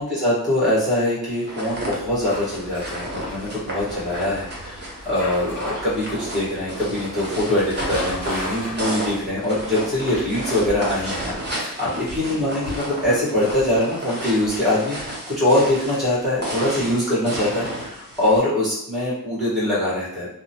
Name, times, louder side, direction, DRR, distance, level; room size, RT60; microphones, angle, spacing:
voice 1, 0.0-20.3, left 1 dB, ahead, -8 dB, 1.2 m, -23 dB
sound 1, 1.3-18.4, right 1 dB, 30° right, 0.9 m, -32 dB
sound 2, 1.7-11.5, left 1 dB, 45° left, 1.2 m, -38 dB
2.9 x 2.1 x 2.8 m, 0.73 s
wide cardioid pair, 120°, 34 cm